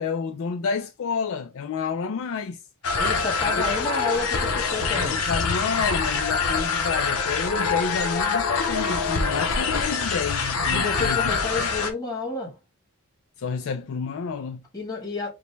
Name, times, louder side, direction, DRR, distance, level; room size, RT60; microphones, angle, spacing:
voice 1, 0.0-2.6 3.4-3.7 5.1-11.3 11.6-11.7 13.4-14.6, left 5 dB, 60° left, 0.4 m, -29 dB
sound 1, 2.8-11.9, left 4 dB, 80° left, 0.8 m, -25 dB
voice 2, 3.0-5.2 10.7-12.6 14.7-15.3, left 4 dB, 15° left, 1.5 m, -30 dB
5.2 x 2.2 x 3.2 m
head